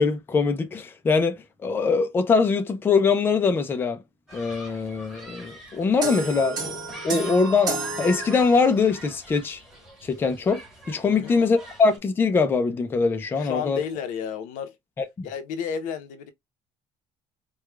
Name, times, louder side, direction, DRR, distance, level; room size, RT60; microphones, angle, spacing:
voice 1, 0.0-4.0 4.3-6.8 7.0-9.6 10.0-10.6 10.9-13.8 15.2-15.3, left 4 dB, 15° left, 0.5 m, -22 dB
Human group actions, 4.3-12.0, right 1 dB, 5° right, 1.3 m, -43 dB
sound 1, 6.0-8.9, right 3 dB, 30° right, 1.8 m, -32 dB
voice 2, 13.4-14.8 15.2-16.3, left 7 dB, 85° left, 0.9 m, -32 dB
4.6 x 2.3 x 2.3 m
cardioid pair, 180°, 13 cm